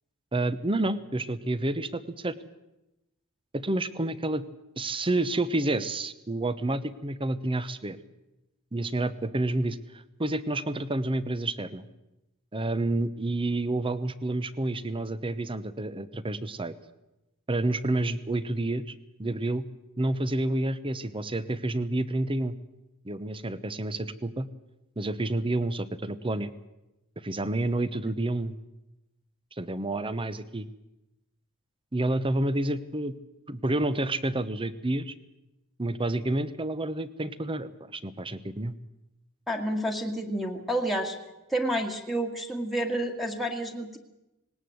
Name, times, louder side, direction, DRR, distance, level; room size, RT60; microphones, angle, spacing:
voice 1, 0.3-2.3 3.5-4.4 4.8-8.0 8.7-9.8 10.2-11.9 12.5-16.7 17.5-19.6 20.0-22.5 23.0-24.5 25.0-26.5 27.2-28.5 29.6-30.7 31.9-33.1 33.5-35.1 35.8-38.7, right 2 dB, 25° right, 15 dB, 1.0 m, -29 dB
voice 2, 39.5-41.2 41.5-44.0, right 1 dB, ahead, 4 dB, 1.8 m, -29 dB
19.5 x 18.5 x 7.9 m, 0.96 s
head